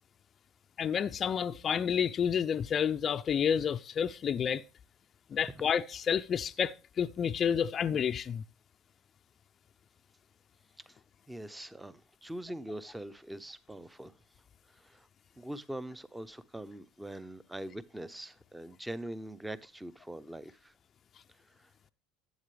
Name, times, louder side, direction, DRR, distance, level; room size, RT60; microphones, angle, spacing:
voice 1, 0.8-4.6 5.3-8.4, left 8 dB, 40° left, 0.5 m, -30 dB
voice 2, 11.3-14.1 14.7-15.1 15.4-20.7 21.5-21.7, right 1 dB, 10° right, 0.7 m, -43 dB
12.0 x 8.4 x 3.2 m
hypercardioid pair, 80°, 0 cm